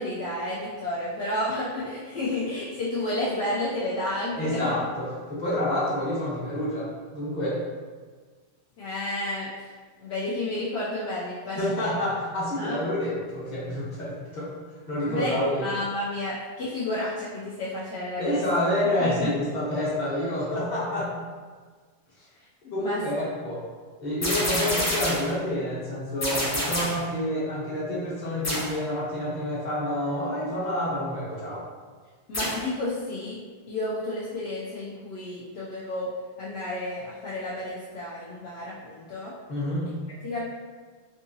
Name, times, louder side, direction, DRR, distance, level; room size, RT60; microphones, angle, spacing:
voice 1, 0.0-4.6 8.8-9.7 10.0-12.0 12.6-12.8 15.0-15.3 15.6-18.4 19.0-19.3 22.8-23.0 32.3-33.4 33.7-36.1 36.4-39.3 40.2-40.4, left 1 dB, 70° left, -7 dB, 0.8 m, -31 dB
voice 2, 4.4-7.6 11.6-14.5 14.9-15.7 18.2-21.1 22.7-23.6 24.0-31.6 39.5-39.9, left 1 dB, 40° left, -8 dB, 1.1 m, -28 dB
sound 1, 24.2-25.4 26.2-27.1 28.4-28.8 32.3-32.7, equal, 20° left, 0.5 m, -27 dB
3.5 x 2.7 x 2.6 m, 1.5 s
omnidirectional pair, 1.2 m